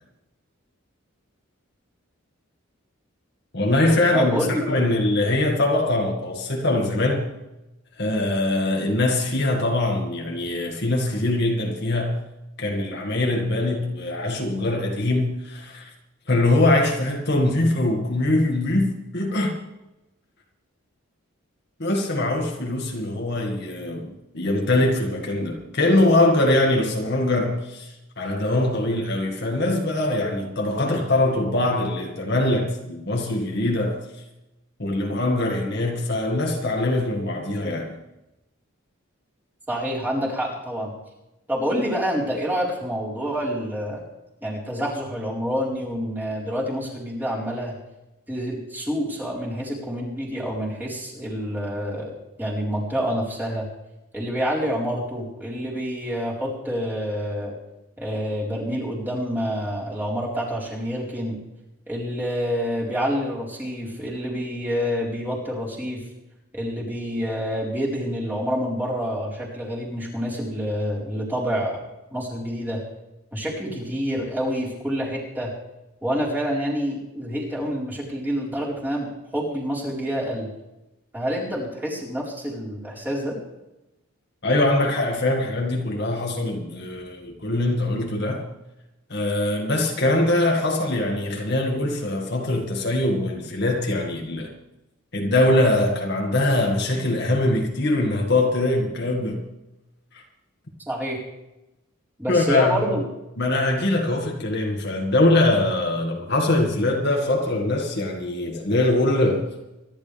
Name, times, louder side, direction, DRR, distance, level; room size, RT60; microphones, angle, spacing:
voice 1, 3.5-7.3 8.0-12.2 12.6-15.9 16.3-19.5 21.8-34.0 34.8-37.9 84.4-88.5 89.1-94.5 95.1-99.4 100.1-100.2 102.3-102.9 103.4-109.4, left 2 dB, 50° left, 2.1 m, -22 dB
voice 2, 4.1-4.6 39.7-40.9 41.5-44.0 44.4-47.7 48.3-53.7 54.1-57.6 58.0-61.4 61.9-66.0 66.5-71.8 72.1-72.8 73.3-75.5 76.0-80.5 81.1-83.3 100.9-101.2 102.2-103.0, equal, 10° right, 4.4 m, -27 dB
25.5 x 11.5 x 3.5 m
head